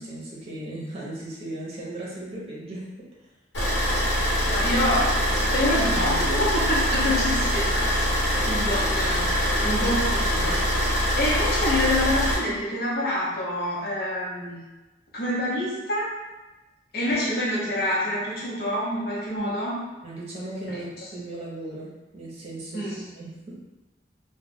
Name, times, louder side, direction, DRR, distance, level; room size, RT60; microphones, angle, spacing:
voice 1, 0.0-2.9 20.0-23.6, right 1 dB, 35° right, -5 dB, 0.7 m, -37 dB
Car / Idling, 3.5-12.4, equal, 75° left, 1.0 m, -24 dB
voice 2, 4.5-8.1 8.4-14.6 15.1-16.1 16.9-19.9 20.7-20.8 22.7-23.1, left 1 dB, 55° left, -7 dB, 0.8 m, -27 dB
2.3 x 2.2 x 3.5 m, 1.1 s
head